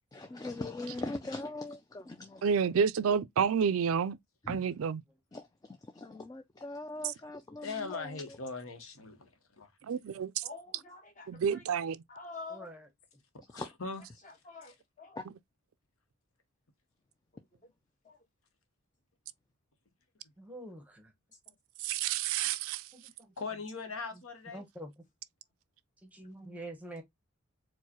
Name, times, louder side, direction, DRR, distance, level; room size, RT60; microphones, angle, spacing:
voice 1, 0.1-2.5 4.4-4.6 5.3-8.2 13.5-13.7 15.2-15.3, left 2 dB, 15° left, 0.3 m, -41 dB
voice 2, 2.4-4.2 4.5-5.0 9.9-10.4 11.3-12.0 21.8-22.8, right 7 dB, 75° right, 0.4 m, -29 dB
voice 3, 7.6-9.3 9.6-9.7 13.5-14.0 23.4-24.6, left 4 dB, 75° left, 1.0 m, -40 dB
voice 4, 10.4-11.7 12.1-12.7 14.2-15.2 18.0-18.2, left 3 dB, 35° left, 1.2 m, -47 dB
voice 5, 12.5-12.9 20.4-21.1 22.9-23.3 24.5-24.9 26.0-27.0, right 1 dB, 5° right, 0.9 m, -46 dB
4.5 x 2.2 x 2.8 m
head